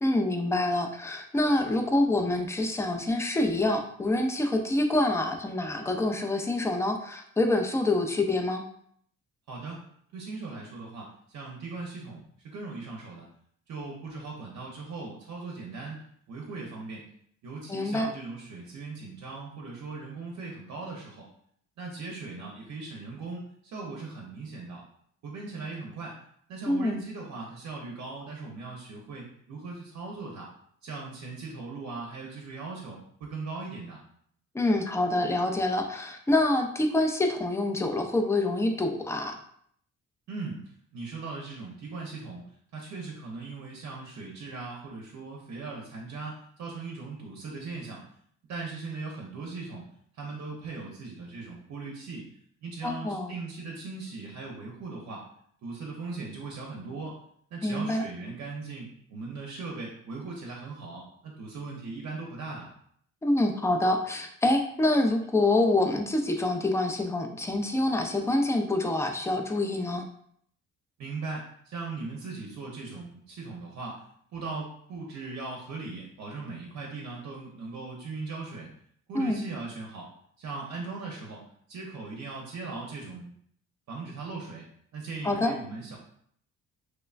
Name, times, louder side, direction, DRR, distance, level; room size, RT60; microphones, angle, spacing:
voice 1, 0.0-8.6 17.7-18.1 26.7-27.0 34.5-39.4 52.8-53.3 57.6-58.0 63.2-70.1 79.1-79.4 85.2-85.5, left 2 dB, 10° left, 5 dB, 0.3 m, -26 dB
voice 2, 9.5-9.8 10.1-13.3 13.7-16.0 16.3-17.0 17.4-21.3 21.8-24.8 25.2-26.2 26.5-30.5 30.8-34.0 40.3-40.6 40.9-42.4 42.7-48.0 48.5-49.8 50.1-52.3 52.6-55.2 55.6-57.2 57.5-62.7 71.0-74.0 74.3-78.7 79.1-80.1 80.4-83.3 83.9-84.7 84.9-86.0, right 3 dB, 65° right, -1 dB, 0.6 m, -39 dB
3.1 x 2.1 x 2.4 m, 0.65 s
cardioid pair, 90°, 30 cm